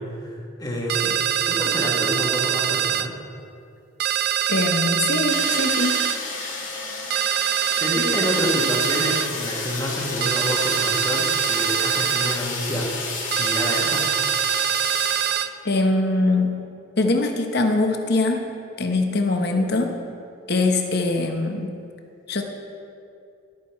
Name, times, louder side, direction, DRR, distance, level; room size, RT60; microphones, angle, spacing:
voice 1, 0.0-3.1 7.7-12.9 13.3-14.1, left 1 dB, 20° left, -1 dB, 1.5 m, -28 dB
sound 1, 0.9-3.1 4.0-6.2 7.1-9.3 10.2-12.4 13.3-15.5, right 9 dB, 50° right, 0.4 m, -23 dB
voice 2, 4.5-6.0 15.6-16.6 17.0-18.5 18.8-19.9 20.5-21.8 22.3-22.4, left 2 dB, 50° left, 3 dB, 1.0 m, -22 dB
sound 2, 5.3-15.3, left 4 dB, 70° left, 2.3 m, -31 dB
12.5 x 8.7 x 4.5 m, 2.5 s
head